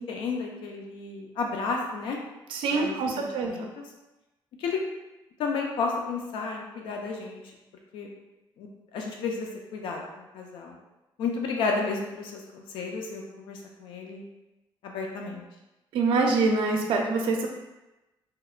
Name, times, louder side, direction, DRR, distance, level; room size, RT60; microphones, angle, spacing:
voice 1, 0.0-2.2 2.7-3.9 4.6-4.8 5.4-7.4 7.9-8.1 8.6-10.7 11.2-14.2 14.8-15.4, left 4 dB, 75° left, 0 dB, 0.4 m, -32 dB
voice 2, 2.5-3.6 15.9-17.5, right 3 dB, 75° right, 2 dB, 0.4 m, -25 dB
2.8 x 2.1 x 2.3 m, 1.0 s
cardioid pair, 150°, 9 cm